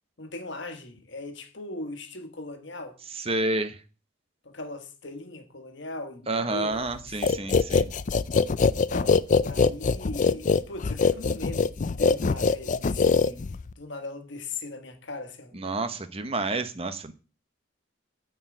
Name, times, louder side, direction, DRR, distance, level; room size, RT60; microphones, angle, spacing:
voice 1, 0.2-3.0 4.4-7.5 8.7-15.9 16.2-16.3, left 2 dB, 60° left, 1.4 m, -39 dB
voice 2, 3.1-3.8 6.3-7.9 15.5-17.1, right 2 dB, 30° right, 0.9 m, -29 dB
sound 1, 7.2-13.7, left 4 dB, 40° left, 0.4 m, -23 dB
9.4 x 4.7 x 7.8 m
head